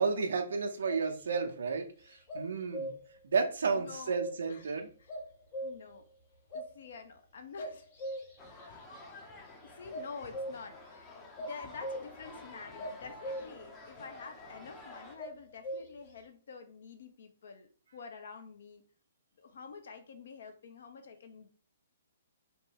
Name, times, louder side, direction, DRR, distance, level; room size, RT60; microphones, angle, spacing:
voice 1, 0.0-2.9 3.2-4.9, right 5 dB, 65° right, 5 dB, 0.5 m, -32 dB
sound 1, 0.8-1.8 2.3-3.2 3.7-4.7 5.1-6.0 6.5-6.7 7.6-8.6 9.9-10.8 11.4-12.3 12.8-13.7 15.2-16.1, equal, 45° left, 1.5 m, -40 dB
voice 2, 3.6-4.2 4.5-4.7 5.0-5.2 5.6-6.0 6.5-7.9 8.7-8.8 9.6-11.1 11.4-18.8 19.4-21.5, left 5 dB, 60° left, 6 dB, 0.6 m, -48 dB
sound 2, 8.4-15.2, left 2 dB, 20° left, 0.6 m, -50 dB
2.8 x 2.2 x 3.3 m, 0.41 s
figure-of-eight pair, 125°, 0 cm